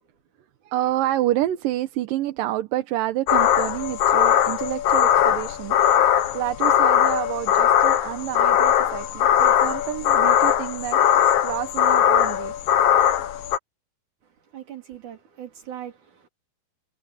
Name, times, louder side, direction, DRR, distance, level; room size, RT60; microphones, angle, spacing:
voice 1, 0.6-12.5, right 14 dB, 70° right, 2.5 m, -28 dB
sound 1, 3.3-13.6, left 10 dB, 70° left, 3.0 m, -20 dB
voice 2, 14.2-16.3, right 10 dB, 55° right, 4.8 m, -40 dB
omnidirectional pair, 4.4 m